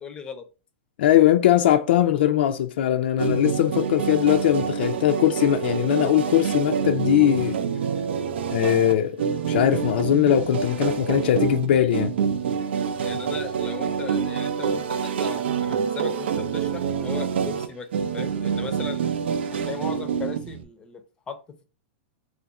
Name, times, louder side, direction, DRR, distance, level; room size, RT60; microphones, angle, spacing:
voice 1, 0.0-0.4 13.0-17.9 18.1-19.1 19.5-21.0 21.3-21.4, left 6 dB, 15° left, 0.5 m, -37 dB
voice 2, 1.0-7.6 8.5-9.2 9.4-12.1, left 11 dB, 70° left, 0.4 m, -20 dB
sound 1, 3.2-20.6, right 7 dB, 85° right, 0.5 m, -27 dB
3.3 x 2.5 x 4.1 m
supercardioid pair, 155°, 6 cm